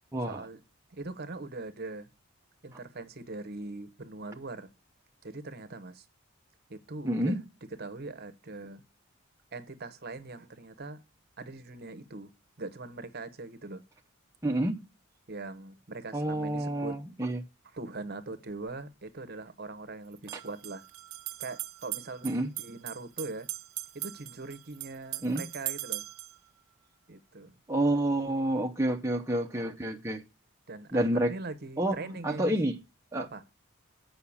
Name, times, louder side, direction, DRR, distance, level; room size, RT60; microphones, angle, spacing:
voice 1, 0.3-0.6 0.9-2.1 2.6-4.7 5.2-6.1 6.7-7.4 7.8-8.8 9.5-11.0 11.4-12.3 12.6-13.8 15.3-17.0 17.7-20.8 21.4-22.3 22.6-23.5 23.9-26.0 27.1-27.6 30.7-32.6 33.3-33.4, right 3 dB, 45° right, 0.9 m, -41 dB
voice 2, 7.0-7.4 14.4-14.8 16.1-17.4 22.2-22.5 25.2-25.4 27.7-30.2 30.9-31.3 31.8-32.8 33.1-33.3, right 1 dB, 15° right, 0.7 m, -29 dB
sound 1, 18.5-18.6 20.1-26.4, right 17 dB, 75° right, 0.6 m, -40 dB
8.5 x 5.7 x 7.1 m
head